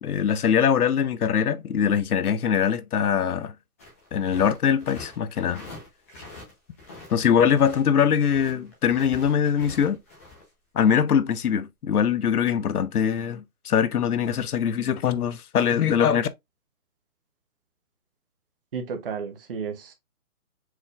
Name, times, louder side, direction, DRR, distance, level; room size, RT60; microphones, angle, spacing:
voice 1, 0.0-3.5 4.1-5.7 7.1-10.0 10.7-16.3, left 8 dB, 75° left, 0.7 m, -22 dB
sound 1, 3.8-7.1 7.4-10.4, left 3 dB, 10° left, 0.7 m, -44 dB
voice 2, 18.7-19.9, right 6 dB, 40° right, 0.8 m, -32 dB
4.6 x 3.6 x 2.3 m
hypercardioid pair, 155°, 45 cm